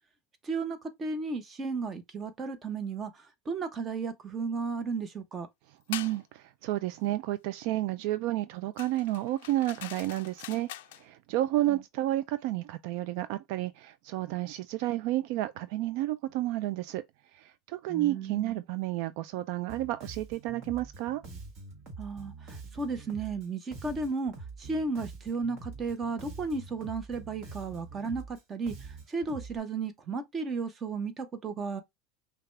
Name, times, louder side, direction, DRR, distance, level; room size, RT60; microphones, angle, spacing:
voice 1, 0.4-3.1 3.5-5.5 11.7-11.8 17.9-18.6 22.0-24.3 24.6-28.7 29.1-31.8, right 4 dB, 25° right, 0.9 m, -34 dB
sound 1, 5.9-6.2 8.8-11.0, left 15 dB, 85° left, 0.3 m, -43 dB
voice 2, 5.9-10.7 11.0-17.0 17.3-21.2, right 15 dB, 65° right, 0.3 m, -31 dB
Bass guitar, 19.7-29.6, right 4 dB, 50° right, 1.5 m, -45 dB
5.7 x 2.3 x 3.2 m
supercardioid pair, 130°, 0 cm